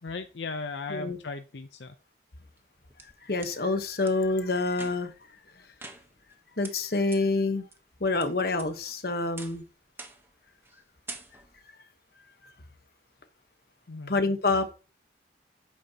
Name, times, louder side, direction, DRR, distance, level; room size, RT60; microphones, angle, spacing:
voice 1, 0.0-1.9 13.9-14.2, left 4 dB, 70° left, 0.6 m, -37 dB
sound 1, 2.6-3.5 4.1-4.2 4.7-5.2 5.8-6.4 6.6-6.7 7.1-7.2 7.7-8.2 8.6-9.0 9.4-9.6 10.0-10.3 10.6-10.8 11.1-11.6, right 3 dB, 10° right, 1.0 m, -45 dB
voice 2, 3.3-5.1 6.6-7.7 8.0-9.6 14.1-14.7, left 3 dB, 55° left, 1.1 m, -27 dB
11.0 x 8.5 x 2.9 m
head